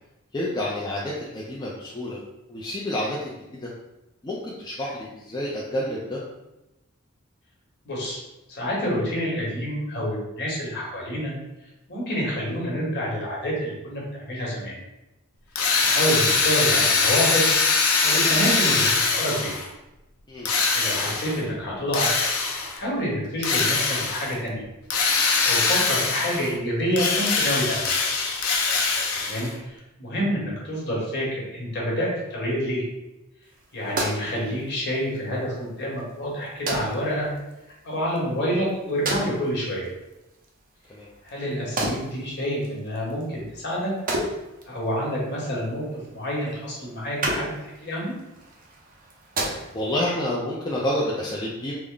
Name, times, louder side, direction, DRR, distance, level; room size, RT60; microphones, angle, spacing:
voice 1, 0.3-2.2 2.5-3.7 4.2-6.2 20.3-20.7 28.7-29.0 40.9-41.1 49.7-51.7, left 1 dB, 20° left, -5 dB, 0.4 m, -29 dB
voice 2, 7.8-8.2 8.5-11.3 11.9-14.7 15.8-17.6 18.0-19.6 20.7-22.3 22.7-24.6 25.4-28.0 29.2-32.8 33.7-37.3 37.8-39.9 41.2-43.9 44.7-48.1, equal, 55° left, -4 dB, 1.1 m, -28 dB
Drill, 15.6-19.7 20.4-21.4 21.9-22.8 23.4-24.3 24.9-26.5 26.9-29.5, left 4 dB, 80° left, 0.6 m, -22 dB
sound 1, 33.4-50.1, right 1 dB, 40° right, 0.6 m, -35 dB
3.3 x 2.0 x 3.7 m, 0.96 s
head